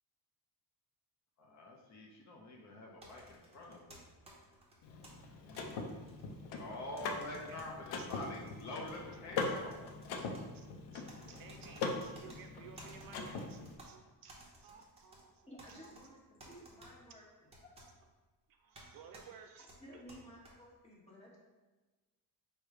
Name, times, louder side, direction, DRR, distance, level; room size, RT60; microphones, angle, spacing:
voice 1, 1.4-4.0 5.4-6.1 6.6-9.8, left 1 dB, 45° left, 0 dB, 0.6 m, -47 dB
sound 1, 3.0-5.1 5.5-6.7 7.0-7.7 8.1-9.0 9.4-10.4 11.1-12.4 12.8-13.9 14.3-15.2 15.6-16.0 16.4-16.9 17.5-17.9 18.7-18.9 19.1-19.2 19.7-20.5, right 1 dB, 15° right, 0.8 m, -57 dB
Car / Mechanisms, 4.8-13.8, left 3 dB, 85° left, 0.7 m, -42 dB
voice 2, 7.3-7.7 8.0-8.1 10.5-10.7 10.9-15.9 18.5-19.7, right 7 dB, 60° right, 5 dB, 0.5 m, -56 dB
voice 3, 15.5-17.2 17.6-17.9 19.8-21.4, equal, 15° left, -6 dB, 1.1 m, -55 dB
4.7 x 2.2 x 4.7 m, 1.2 s
cardioid pair, 165°, 39 cm